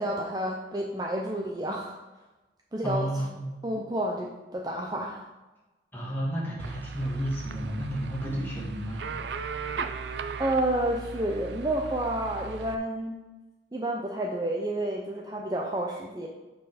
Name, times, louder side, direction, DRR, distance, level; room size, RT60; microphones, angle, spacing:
voice 1, 0.0-2.0 2.7-3.1 3.6-5.2 10.4-13.2 13.7-16.3, right 1 dB, 20° right, 0 dB, 0.6 m, -30 dB
voice 2, 2.8-3.7 5.9-9.1, equal, 10° left, -5 dB, 2.0 m, -32 dB
sound 1, 6.6-12.8, right 5 dB, 75° right, 0.5 m, -37 dB
7.7 x 4.7 x 5.0 m, 1.1 s
head